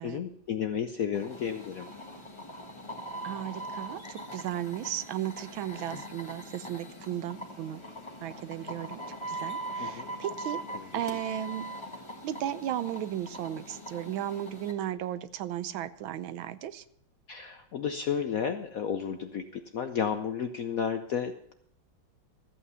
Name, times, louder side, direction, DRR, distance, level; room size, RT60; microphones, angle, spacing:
voice 1, 0.0-1.9 5.9-6.0 9.8-10.1 10.7-10.9 17.3-21.5, left 7 dB, 70° left, 7 dB, 0.8 m, -32 dB
sound 1, 1.1-14.7, right 1 dB, 15° left, 1.3 m, -41 dB
voice 2, 3.2-7.8 8.2-9.0 9.3-10.6 10.9-11.7 12.2-16.8, right 11 dB, 80° right, 14 dB, 1.4 m, -35 dB
14.0 x 8.4 x 5.5 m, 0.71 s
omnidirectional pair, 2.2 m